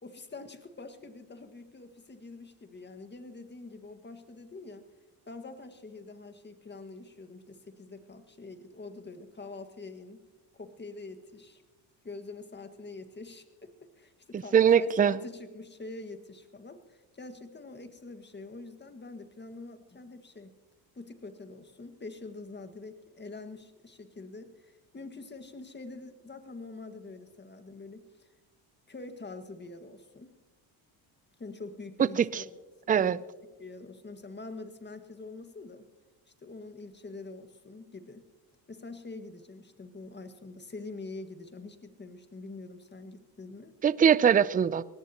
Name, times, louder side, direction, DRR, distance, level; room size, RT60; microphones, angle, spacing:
voice 1, 0.0-4.9 5.3-10.2 10.5-11.6 12.0-20.5 20.9-28.3 28.9-30.3 31.4-32.5 32.9-33.2 33.6-35.9 36.4-38.3 38.7-43.8, left 3 dB, 20° left, 8 dB, 1.7 m, -45 dB
voice 2, 14.3-15.2 32.2-32.4 32.9-33.2 43.8-44.8, right 8 dB, 20° right, 17 dB, 0.4 m, -22 dB
23.0 x 18.5 x 2.9 m, 1.2 s
supercardioid pair, 85°, 49 cm